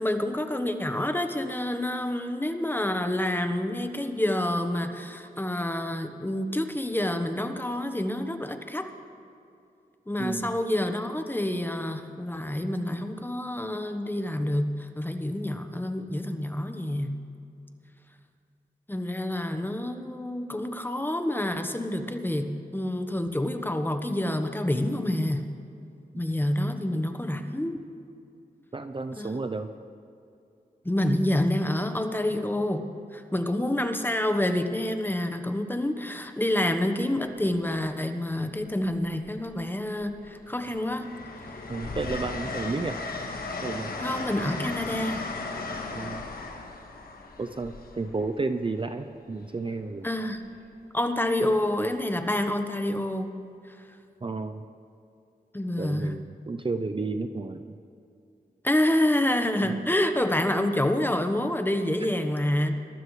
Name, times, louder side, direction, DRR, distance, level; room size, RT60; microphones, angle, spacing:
voice 1, 0.0-8.8 10.1-17.2 18.9-25.5 26.2-27.8 29.1-29.4 30.8-32.8 33.1-41.1 44.0-45.2 50.0-50.4 50.9-53.3 55.5-56.1 58.6-62.7, left 1 dB, 15° left, 7 dB, 1.1 m, -28 dB
voice 2, 10.2-10.6 26.1-26.2 28.7-29.7 41.7-43.0 43.6-43.9 45.9-46.3 47.4-50.1 54.2-54.6 55.8-57.8 59.6-59.7, right 3 dB, 35° right, 8 dB, 0.6 m, -32 dB
Train, 37.5-37.6 38.9-39.6 40.0-48.8 50.4-50.6, left 3 dB, 70° left, 1.5 m, -36 dB
22.5 x 12.5 x 3.2 m, 2.6 s
cardioid pair, 55°, 16 cm